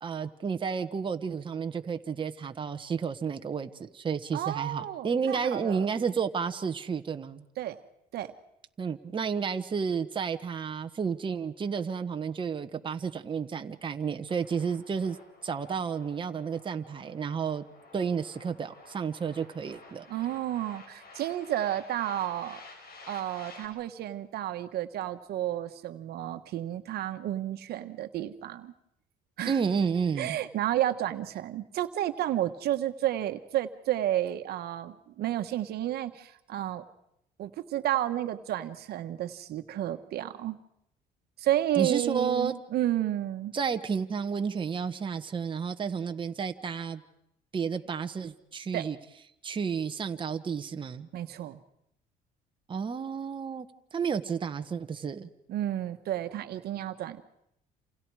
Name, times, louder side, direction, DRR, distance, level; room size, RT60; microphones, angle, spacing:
voice 1, 0.0-7.4 8.8-15.2 15.4-17.6 17.9-20.1 29.4-30.4 41.8-42.5 43.5-47.0 47.5-49.0 49.4-51.1 52.7-55.3, right 6 dB, 30° right, 6 dB, 1.2 m, -31 dB
voice 2, 4.3-5.9 7.6-7.8 8.1-8.3 20.1-22.6 23.1-28.7 29.4-29.6 30.2-36.8 37.4-40.6 41.4-43.5 48.7-48.9 51.1-51.6 55.5-57.2, right 12 dB, 70° right, 9 dB, 1.4 m, -31 dB
sound 1, 14.3-23.7, left 3 dB, 65° left, 5.6 m, -52 dB
28.5 x 28.0 x 4.9 m, 0.78 s
cardioid pair, 110°, 17 cm